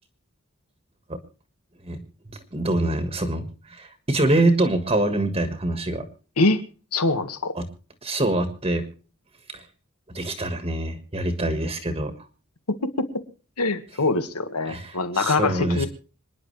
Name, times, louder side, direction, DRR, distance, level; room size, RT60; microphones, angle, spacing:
voice 1, 2.5-6.0 7.6-7.7 8.0-8.9 9.5-9.6 10.1-12.1 14.7-15.9, right 2 dB, 25° right, 8 dB, 1.6 m, -25 dB
voice 2, 6.9-7.5 13.6-15.9, left 3 dB, 90° left, 9 dB, 1.8 m, -23 dB
26.5 x 10.5 x 3.3 m, 0.38 s
head